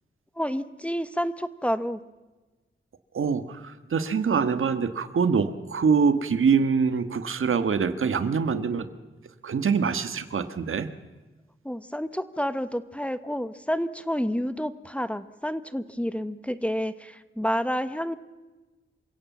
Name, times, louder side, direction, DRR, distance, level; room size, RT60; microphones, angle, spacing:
voice 1, 0.4-2.0 11.6-18.2, equal, 5° left, 13 dB, 1.0 m, -29 dB
voice 2, 3.1-8.9 9.4-10.9, right 5 dB, 85° right, 11 dB, 1.5 m, -24 dB
28.0 x 16.5 x 7.4 m, 1.2 s
wide cardioid pair, 110°, 21 cm